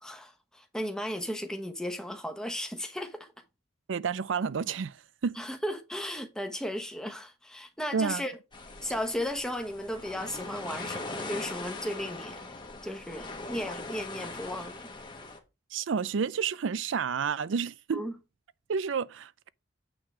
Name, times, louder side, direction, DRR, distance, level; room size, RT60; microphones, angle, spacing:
voice 1, 0.0-3.3 5.4-8.3 8.8-12.4 12.8-14.9 17.9-18.1, equal, 5° left, 1.1 m, -35 dB
voice 2, 3.9-5.4 7.9-8.2 15.7-18.1 18.7-19.5, right 6 dB, 80° right, 0.5 m, -30 dB
sound 1, 8.5-15.4, left 3 dB, 25° left, 1.4 m, -41 dB
8.9 x 3.8 x 6.0 m
head